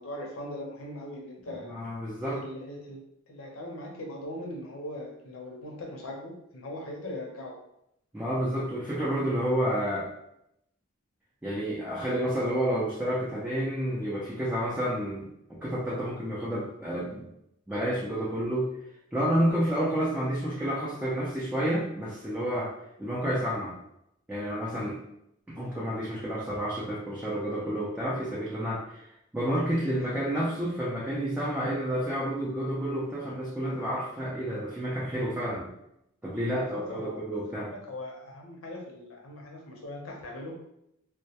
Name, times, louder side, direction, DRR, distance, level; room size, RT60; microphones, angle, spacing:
voice 1, 0.0-1.7 2.3-7.6 19.3-19.5 29.8-30.0 36.5-37.2 37.7-40.7, left 1 dB, 85° left, -1 dB, 0.6 m, -40 dB
voice 2, 1.7-2.4 8.1-10.1 11.4-17.3 17.7-18.7 19.1-22.7 23.0-23.8 24.3-25.0 25.5-29.0 29.3-35.7 36.2-37.7, equal, 10° right, -7 dB, 0.3 m, -30 dB
2.2 x 2.1 x 2.7 m, 0.79 s
head